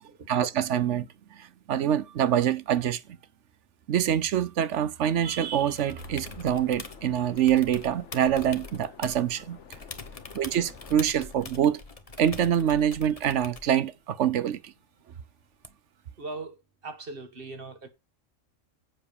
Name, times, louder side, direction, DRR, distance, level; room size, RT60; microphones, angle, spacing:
voice 1, 0.3-3.0 3.9-9.6 10.3-11.8 12.2-14.7, right 10 dB, 70° right, 1.0 m, -25 dB
sound 1, 5.8-7.0 7.4-9.4 9.7-13.8 15.6-15.7, left 4 dB, 30° left, 1.1 m, -44 dB
sound 2, 6.0-11.1, left 6 dB, 70° left, 1.3 m, -49 dB
voice 2, 16.2-16.6 16.8-17.9, right 3 dB, 45° right, 1.6 m, -39 dB
7.8 x 7.0 x 6.7 m
omnidirectional pair, 1.3 m